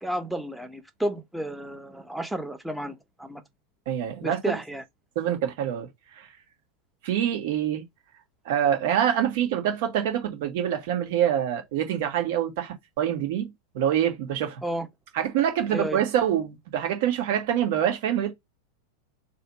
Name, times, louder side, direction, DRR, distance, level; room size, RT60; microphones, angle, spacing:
voice 1, 0.0-3.4 4.2-4.8 14.6-14.9 15.7-16.0, right 1 dB, ahead, 0.9 m, -32 dB
voice 2, 3.9-4.5 5.1-5.9 6.2-6.3 7.0-7.8 8.4-14.6 15.1-18.3, right 10 dB, 50° right, 1.6 m, -25 dB
3.3 x 2.8 x 4.2 m
figure-of-eight pair, 90°, 0 cm